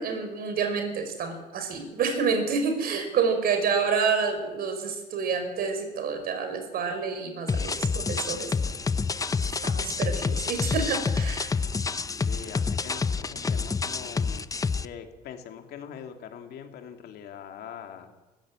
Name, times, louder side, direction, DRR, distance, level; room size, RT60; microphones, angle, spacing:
voice 1, 0.0-8.5 9.6-11.5, right 5 dB, 65° right, 7 dB, 5.2 m, -28 dB
sound 1, 7.5-14.9, left 5 dB, 20° left, 0.6 m, -28 dB
voice 2, 12.2-14.5 14.8-18.1, left 8 dB, 70° left, 5 dB, 2.8 m, -42 dB
20.0 x 14.5 x 8.9 m, 1.2 s
cardioid pair, 110°, 17 cm